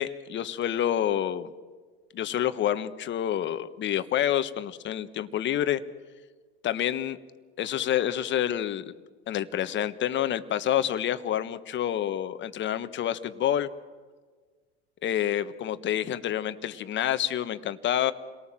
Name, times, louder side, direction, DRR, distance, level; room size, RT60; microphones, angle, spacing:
voice 1, 0.0-1.5 2.1-5.8 6.6-7.2 7.6-8.9 9.3-13.7 15.0-18.1, left 11 dB, 40° left, 12 dB, 1.3 m, -28 dB
28.5 x 18.5 x 7.6 m, 1.5 s
hypercardioid pair, 90°, 29 cm